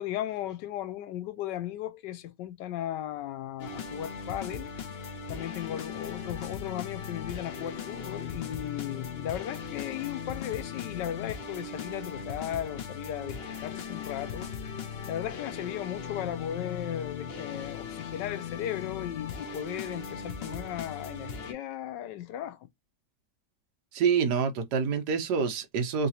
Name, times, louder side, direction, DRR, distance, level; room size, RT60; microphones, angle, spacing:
voice 1, 0.0-4.7 5.3-14.5 15.1-22.7, left 12 dB, 80° left, 1.2 m, -36 dB
sound 1, 3.6-21.5, left 6 dB, 60° left, 0.6 m, -38 dB
voice 2, 23.9-26.1, right 6 dB, 70° right, 1.4 m, -27 dB
3.7 x 2.9 x 2.8 m
omnidirectional pair, 1.9 m